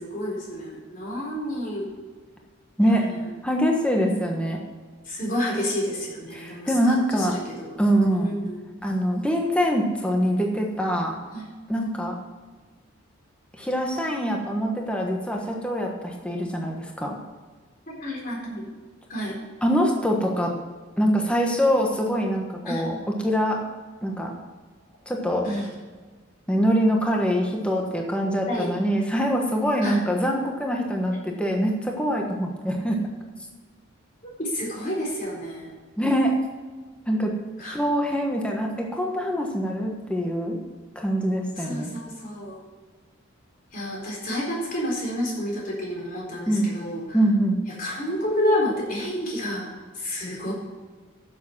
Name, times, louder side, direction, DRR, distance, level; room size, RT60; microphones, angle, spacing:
voice 1, 0.0-1.9 3.0-3.3 5.0-7.8 8.1-8.6 11.3-11.5 15.3-15.4 17.9-18.7 19.1-19.4 22.7-22.8 25.4-25.7 28.5-28.7 29.8-30.0 34.4-35.7 37.6-37.8 41.6-42.6 43.7-47.3 47.7-50.5, left 1 dB, 40° left, -3 dB, 4.1 m, -30 dB
voice 2, 3.4-4.6 6.3-7.3 7.8-8.3 8.8-11.1 11.7-12.2 13.6-17.2 19.6-20.5 21.0-23.6 24.0-24.3 25.1-25.5 26.5-33.0 36.0-36.3 37.1-37.3 37.6-40.6 40.9-41.9 46.5-46.7 47.1-47.6, equal, 5° left, 1 dB, 1.3 m, -24 dB
11.0 x 7.6 x 5.8 m, 1.4 s
head